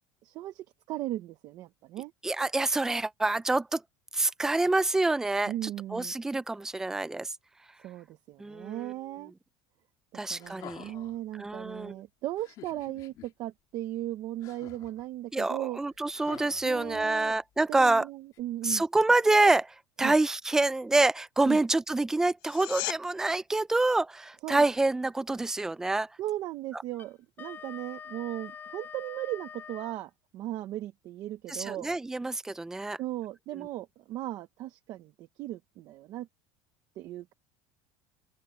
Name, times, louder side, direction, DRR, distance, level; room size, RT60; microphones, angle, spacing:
voice 1, 0.2-2.1 5.5-6.1 7.8-9.3 10.3-15.8 16.6-17.4 17.7-18.8 20.0-20.1 21.5-21.6 24.4-24.6 26.2-31.9 33.0-36.3 37.0-37.3, right 14 dB, 40° right, 1.0 m, -37 dB
voice 2, 2.2-3.8 4.1-7.3 8.4-8.9 10.1-10.9 11.4-12.0 15.3-18.1 18.6-26.1 31.5-33.0, right 2 dB, 5° right, 0.4 m, -27 dB
sound 1, 10.4-11.2 12.4-13.3 14.4-15.1 16.1-17.3 18.3-18.4, left 14 dB, 40° left, 3.8 m, -49 dB
sound 2, 22.4-23.0 34.3-34.4, left 26 dB, 55° left, 4.9 m, -35 dB
Wind instrument woodwind instrument, 26.9-30.0, left 7 dB, 20° left, 6.2 m, -45 dB
open air
cardioid pair, 180°, 10 cm